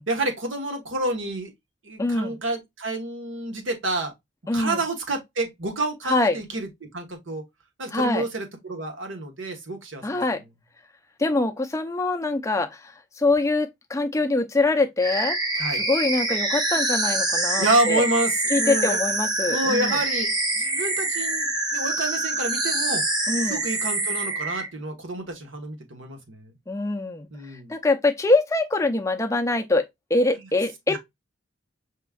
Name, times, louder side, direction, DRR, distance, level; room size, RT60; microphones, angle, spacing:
voice 1, 0.1-1.5 1.8-4.1 4.5-7.4 7.8-10.2 15.5-15.8 17.6-19.0 19.5-23.0 23.4-26.5 27.3-27.7 30.9-31.0, right 2 dB, 80° right, 1.3 m, -28 dB
voice 2, 2.0-2.4 4.5-4.8 6.1-6.4 7.9-8.2 10.0-10.4 11.2-15.4 15.7-18.0 18.5-20.0 23.3-23.6 26.7-27.3 27.7-31.0, left 2 dB, 15° left, 0.5 m, -24 dB
sound 1, 15.0-24.7, right 2 dB, 20° right, 0.8 m, -25 dB
5.1 x 3.6 x 2.3 m
head